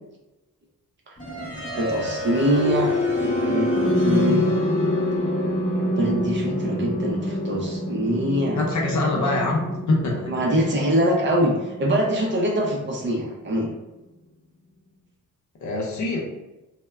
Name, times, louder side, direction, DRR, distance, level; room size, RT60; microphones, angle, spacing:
sound 1, 1.2-13.1, left 1 dB, 25° left, 0.7 m, -26 dB
voice 1, 1.8-3.7 4.1-4.4 5.8-8.6 10.3-13.7, equal, 35° right, -2 dB, 0.4 m, -24 dB
voice 2, 8.6-10.3 15.6-16.2, left 2 dB, 60° left, -2 dB, 0.7 m, -24 dB
3.2 x 2.1 x 2.2 m, 1.0 s
wide cardioid pair, 180°, 33 cm